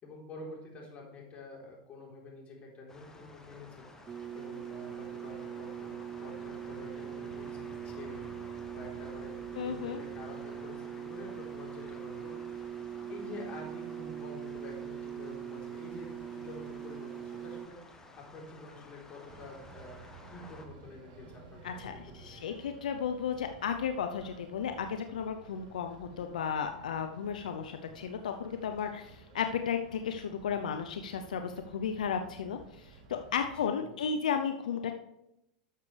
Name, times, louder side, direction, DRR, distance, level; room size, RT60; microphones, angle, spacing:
voice 1, 0.0-12.8 13.1-20.0 20.3-22.5 33.7-33.9, left 2 dB, 30° left, -2 dB, 3.7 m, -48 dB
sound 1, 2.9-20.7, left 2 dB, 15° left, 1.3 m, -52 dB
sound 2, 4.1-17.7, right 10 dB, 20° right, 0.4 m, -42 dB
voice 2, 9.6-10.0 21.6-34.9, left 7 dB, 80° left, 6 dB, 0.6 m, -34 dB
sound 3, 19.2-33.6, right 4 dB, 50° right, 3.0 m, -54 dB
12.0 x 6.7 x 3.3 m, 0.84 s
hypercardioid pair, 110°, 4 cm